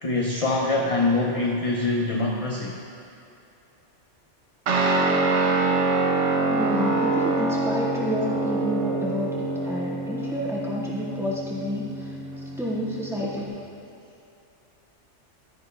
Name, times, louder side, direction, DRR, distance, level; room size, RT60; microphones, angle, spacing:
voice 1, 0.0-2.8, left 2 dB, 40° left, -1 dB, 0.6 m, -24 dB
Guitar, 4.7-13.5, right 2 dB, 75° right, 1.2 m, -25 dB
voice 2, 6.5-12.1 12.6-13.6, equal, ahead, -8 dB, 1.9 m, -30 dB
12.5 x 10.5 x 2.4 m, 2.7 s
omnidirectional pair, 1.2 m